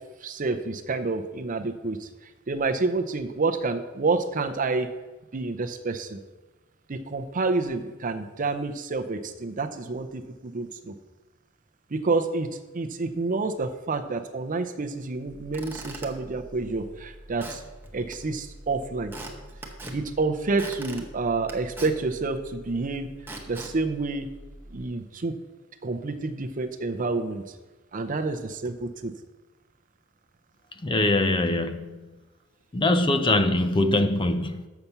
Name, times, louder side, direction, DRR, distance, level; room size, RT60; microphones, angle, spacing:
voice 1, 0.2-2.1 2.5-4.9 5.3-6.2 6.9-10.9 11.9-17.6 17.9-19.1 19.9-23.1 23.5-24.3 24.7-25.3 25.8-27.4 27.9-29.1, right 3 dB, 40° right, 0.6 m, -28 dB
Squeak / Wood, 15.3-24.9, right 1 dB, 10° right, 1.0 m, -43 dB
voice 2, 30.8-32.1 32.7-34.7, left 2 dB, 25° left, 0.5 m, -23 dB
7.0 x 5.8 x 6.7 m
head